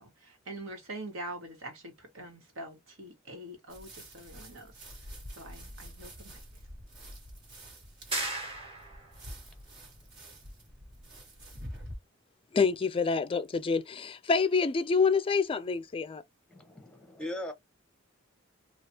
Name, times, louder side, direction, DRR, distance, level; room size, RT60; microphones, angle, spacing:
voice 1, 0.0-4.8 5.3-6.4, right 1 dB, 80° right, 1.4 m, -44 dB
sound 1, 3.7-12.0, equal, 60° right, 1.5 m, -47 dB
sound 2, 8.1-9.2, right 2 dB, 30° right, 1.2 m, -35 dB
voice 2, 12.5-16.2, left 5 dB, 25° left, 0.3 m, -27 dB
voice 3, 16.5-17.5, left 1 dB, 5° left, 0.7 m, -39 dB
3.3 x 2.4 x 2.8 m
head